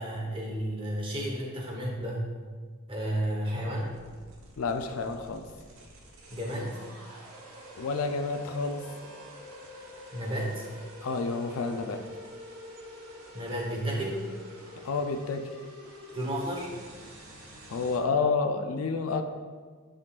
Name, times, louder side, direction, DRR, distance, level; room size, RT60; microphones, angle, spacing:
voice 1, 0.0-2.2 2.9-3.9 6.3-6.8 10.1-10.6 13.3-14.2 16.1-16.7, equal, 25° right, -2 dB, 1.1 m, -32 dB
sound 1, 3.7-18.0, equal, 75° right, 1.1 m, -47 dB
voice 2, 4.6-5.4 7.8-8.8 11.0-12.0 14.8-15.5 17.7-19.2, left 4 dB, 75° left, 7 dB, 0.5 m, -29 dB
11.0 x 3.8 x 2.4 m, 1.5 s
head